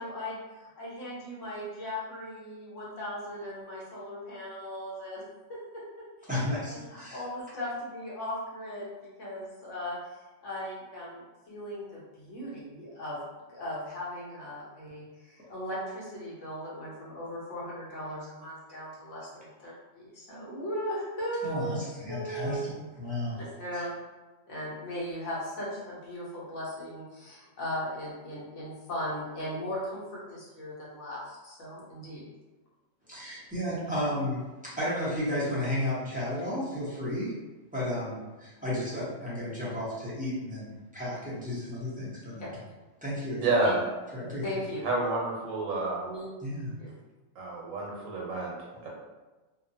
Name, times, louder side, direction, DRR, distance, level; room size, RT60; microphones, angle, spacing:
voice 1, 0.0-5.2 5.5-5.6 6.9-8.9 9.2-10.0 10.4-13.2 13.5-21.7 22.1-22.7 23.6-23.9 24.5-32.2 42.4-42.5 43.6-43.8 44.4-44.9 46.0-46.3 46.8-46.9, equal, 70° left, -6 dB, 1.2 m, -37 dB
voice 2, 6.3-7.2 21.4-22.7 23.0-23.4 23.7-23.8 33.1-37.3 37.7-42.5 43.0-43.5 44.1-44.4 46.4-46.7, left 1 dB, 10° right, -10 dB, 0.7 m, -33 dB
voice 3, 43.4-43.8 44.8-46.1 47.4-48.5 48.8-48.9, right 2 dB, 80° right, -2 dB, 1.1 m, -29 dB
2.8 x 2.2 x 2.6 m, 1.2 s
omnidirectional pair, 1.3 m